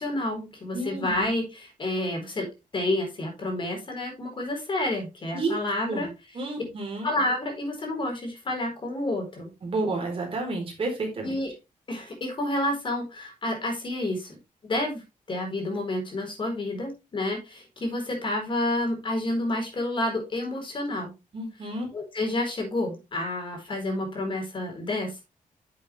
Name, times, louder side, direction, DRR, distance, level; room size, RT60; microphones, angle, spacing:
voice 1, 0.0-2.5 2.7-6.1 7.0-9.5 11.2-11.5 11.9-14.4 14.6-21.1 21.9-25.2, left 1 dB, 35° left, 3 dB, 4.4 m, -29 dB
voice 2, 0.7-1.3 5.3-5.5 5.8-6.1 6.3-7.1 9.6-11.3 21.3-21.9, right 2 dB, 40° right, 1 dB, 4.3 m, -30 dB
10.0 x 7.5 x 3.3 m, 0.25 s
wide cardioid pair, 180°, 15 cm